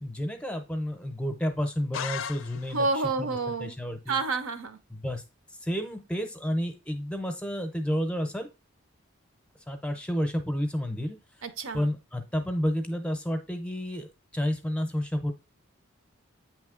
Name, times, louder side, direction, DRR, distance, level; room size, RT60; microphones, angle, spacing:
voice 1, 0.0-2.9 3.2-4.2 4.9-5.2 5.6-8.5 9.7-11.2 11.7-14.1 14.3-15.3, equal, 5° left, 0.6 m, -30 dB
sound 1, 1.9-3.0, left 8 dB, 65° left, 0.4 m, -36 dB
voice 2, 2.7-3.8 4.1-4.8 11.4-11.9, right 3 dB, 75° right, 0.7 m, -29 dB
8.2 x 3.1 x 3.6 m
head